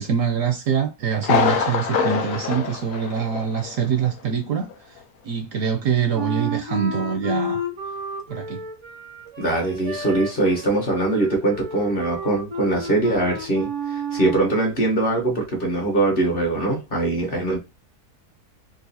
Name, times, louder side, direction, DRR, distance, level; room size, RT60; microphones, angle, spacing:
voice 1, 0.0-7.6 8.3-8.6, right 7 dB, 70° right, 0.8 m, -24 dB
Thunder, 1.2-3.8 4.1-4.2 4.7-4.8, left 6 dB, 65° left, 1.0 m, -24 dB
Wind instrument woodwind instrument, 6.1-14.6, right 1 dB, 35° right, 0.4 m, -31 dB
voice 2, 9.4-17.6, right 2 dB, 40° left, 1.0 m, -22 dB
4.0 x 2.5 x 2.6 m
omnidirectional pair, 1.7 m